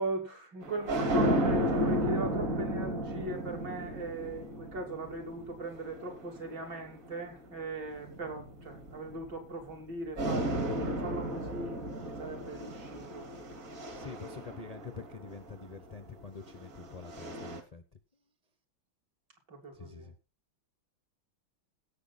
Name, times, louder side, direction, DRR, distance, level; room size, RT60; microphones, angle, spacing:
voice 1, 0.0-13.3 19.5-20.1, right 2 dB, 60° right, 3.9 m, -39 dB
sound 1, 0.6-7.2 8.0-9.8 10.2-15.5 16.5-17.6, equal, 45° right, 2.5 m, -34 dB
voice 2, 13.9-17.8 19.8-20.1, left 5 dB, 50° left, 0.4 m, -46 dB
17.0 x 7.1 x 4.2 m
omnidirectional pair, 2.2 m